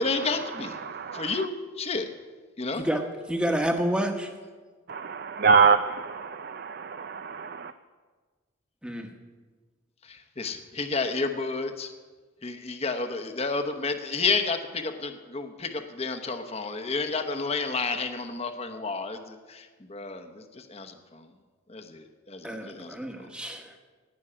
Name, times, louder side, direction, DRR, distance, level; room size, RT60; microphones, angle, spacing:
voice 1, 0.0-2.1 2.6-2.9 10.0-11.9 12.4-21.3 21.7-23.0, left 4 dB, 30° left, 7 dB, 0.9 m, -31 dB
voice 2, 0.8-1.3 4.9-7.7, right 5 dB, 45° right, 10 dB, 0.4 m, -25 dB
voice 3, 3.3-4.3 8.8-9.1 22.4-23.7, equal, 5° right, 4 dB, 1.1 m, -29 dB
17.5 x 6.3 x 9.8 m, 1.4 s
head